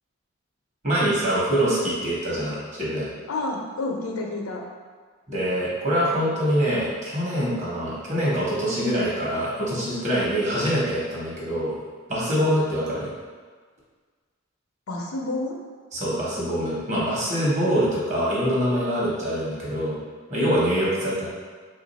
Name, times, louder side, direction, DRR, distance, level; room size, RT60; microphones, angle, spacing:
voice 1, 0.8-3.1 5.3-11.7 12.1-13.1 15.9-20.0 20.3-21.3, equal, 35° right, -6 dB, 1.0 m, -24 dB
voice 2, 3.3-4.6 12.4-12.5 14.9-15.6, left 2 dB, 90° left, 0 dB, 0.6 m, -29 dB
3.3 x 2.5 x 4.0 m, 1.5 s
head